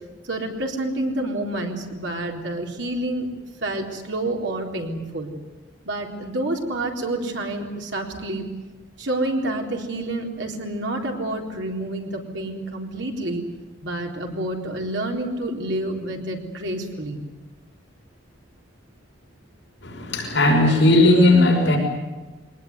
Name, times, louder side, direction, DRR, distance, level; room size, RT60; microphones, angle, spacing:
voice 1, 0.2-3.3 3.6-5.3 5.8-8.5 9.0-13.4 13.8-17.2, right 1 dB, 70° right, 2 dB, 3.9 m, -28 dB
voice 2, 19.8-21.8, left 1 dB, 70° left, 0 dB, 5.9 m, -16 dB
23.0 x 19.5 x 9.5 m, 1.2 s
head